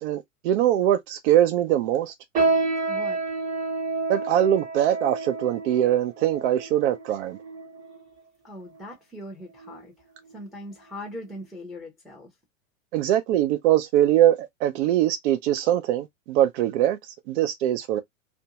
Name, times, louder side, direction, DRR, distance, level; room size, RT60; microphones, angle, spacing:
voice 1, 0.0-2.1 4.1-7.4 12.9-17.0 17.3-18.0, right 12 dB, 55° right, 0.6 m, -22 dB
sound 1, 2.4-8.0 8.7-8.8 9.6-9.9 10.3-10.4 11.1-11.2, right 3 dB, 20° right, 0.9 m, -29 dB
voice 2, 2.9-3.4 8.4-10.1 10.3-12.3, left 1 dB, ahead, 0.6 m, -40 dB
2.5 x 2.2 x 2.8 m
hypercardioid pair, 135°, 41 cm